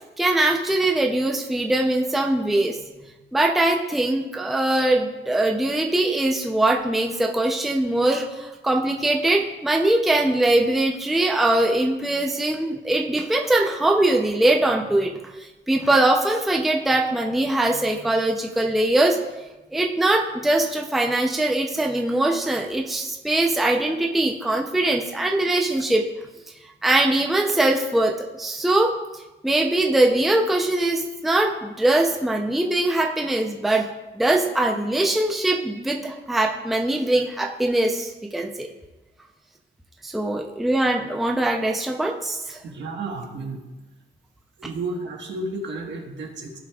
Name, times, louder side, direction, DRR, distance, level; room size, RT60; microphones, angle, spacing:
voice 1, 0.2-2.8 3.3-15.1 15.7-19.2 19.7-26.0 26.8-28.9 29.4-33.9 34.2-38.7 40.0-42.6, right 1 dB, ahead, 1 dB, 0.5 m, -22 dB
voice 2, 42.6-43.6 44.6-46.6, right 2 dB, 65° right, 1 dB, 1.4 m, -32 dB
15.0 x 5.1 x 2.3 m, 1.1 s
wide cardioid pair, 160°, 20 cm